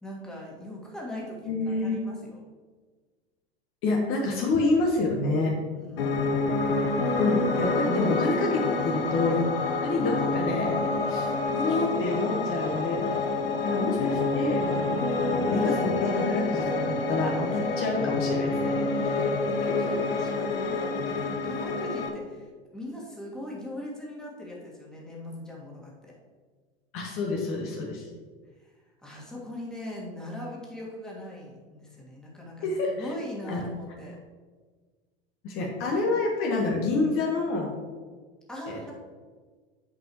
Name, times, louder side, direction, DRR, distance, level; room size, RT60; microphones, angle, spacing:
voice 1, 0.0-2.4 5.8-6.4 10.2-10.6 11.6-12.2 18.9-19.2 19.6-26.1 28.6-28.7 29.0-34.2 38.5-38.9, left 1 dB, ahead, -4 dB, 2.0 m, -40 dB
voice 2, 1.4-2.1 3.8-5.5 5.9-6.1 7.2-9.4 9.8-11.3 11.5-13.1 13.6-15.0 15.3-18.5 26.9-28.0 32.6-33.1 33.5-33.6 35.4-37.7 38.7-38.9, left 3 dB, 40° left, -1 dB, 1.4 m, -28 dB
Piano, 6.0-22.1, left 3 dB, 65° left, 1.1 m, -28 dB
9.0 x 5.4 x 3.1 m, 1.5 s
figure-of-eight pair, 90°, 32 cm